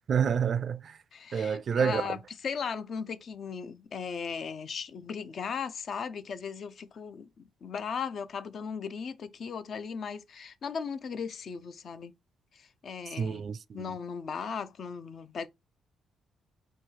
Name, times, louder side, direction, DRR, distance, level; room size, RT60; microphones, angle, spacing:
voice 1, 0.1-0.9 1.3-2.0 13.2-13.8, right 7 dB, 50° right, 0.3 m, -28 dB
voice 2, 1.1-12.1 12.5-13.4 13.7-15.5, left 6 dB, 55° left, 0.6 m, -37 dB
4.4 x 2.4 x 4.5 m
cardioid pair, 90°, 0 cm